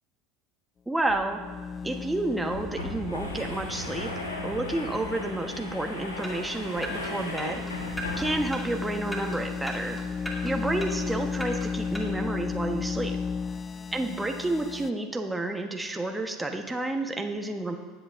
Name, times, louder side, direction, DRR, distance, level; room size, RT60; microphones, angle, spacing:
voice 1, 0.9-1.4 1.8-4.1 4.4-7.8 8.2-10.0 10.4-13.2 13.9-17.8, right 2 dB, 10° right, 3 dB, 1.1 m, -30 dB
sound 1, 1.0-14.9, left 5 dB, 30° left, 0.4 m, -35 dB
sound 2, 1.1-1.2 1.5-1.6 2.3-8.7, left 1 dB, 90° left, 1.3 m, -37 dB
sound 3, 6.2-12.0, equal, 5° left, 2.4 m, -40 dB
19.5 x 8.1 x 2.6 m, 1.4 s
hypercardioid pair, 75°, 0 cm